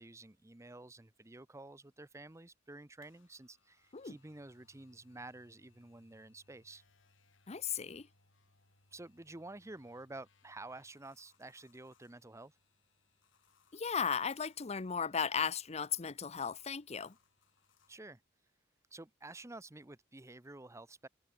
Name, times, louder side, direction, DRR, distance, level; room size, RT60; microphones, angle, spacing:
voice 1, 0.0-6.8 8.9-12.6 17.9-18.2 18.9-21.1, right 2 dB, 15° right, 0.8 m, -51 dB
sound 1, 3.0-18.0, left 3 dB, 80° left, 4.4 m, -72 dB
voice 2, 7.5-8.1 13.7-17.1, left 6 dB, 35° left, 0.7 m, -36 dB
open air
head